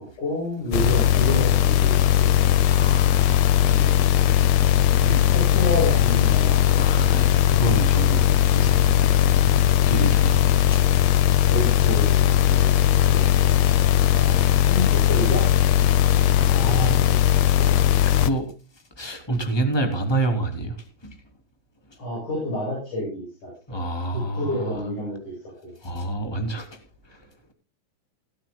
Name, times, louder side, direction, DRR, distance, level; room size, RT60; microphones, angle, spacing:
voice 1, 0.2-2.3 3.6-3.9 4.2-6.8 11.4-12.7 13.0-13.3 14.0-15.5 16.6-17.1 17.6-17.8 22.0-23.8 24.1-25.3 25.6-25.7, left 1 dB, 85° left, 9.2 m, -30 dB
sound 1, 0.7-18.3, left 11 dB, 70° left, 1.8 m, -19 dB
voice 2, 2.5-3.8 4.3-4.5 4.9-5.1 6.7-11.4 16.3-17.3 18.1-21.2 21.9-22.0 23.7-24.7 25.8-27.4, right 2 dB, 10° left, 2.9 m, -29 dB
18.0 x 15.0 x 2.3 m
omnidirectional pair, 3.4 m